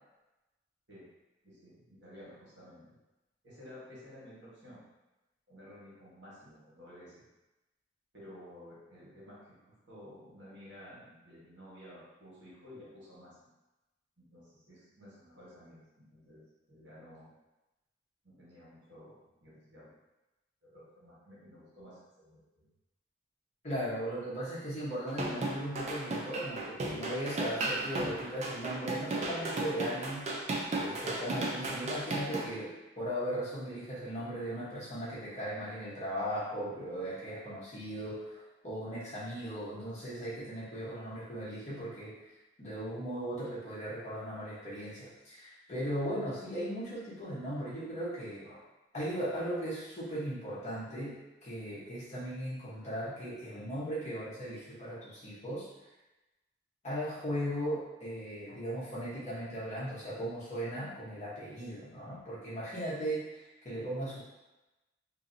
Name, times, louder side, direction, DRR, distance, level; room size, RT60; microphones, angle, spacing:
voice 1, 1.4-2.8 3.4-4.8 5.5-7.2 8.1-13.5 14.2-17.3 18.2-19.9 20.6-22.7, left 1 dB, 75° right, -8 dB, 1.3 m, -53 dB
voice 2, 23.6-30.3 30.8-42.1 42.6-48.6 48.9-55.7 56.8-64.2, equal, 40° left, -10 dB, 1.0 m, -37 dB
sound 1, 25.1-32.5, right 2 dB, 35° right, 0.4 m, -35 dB
2.8 x 2.7 x 2.6 m, 1.0 s
head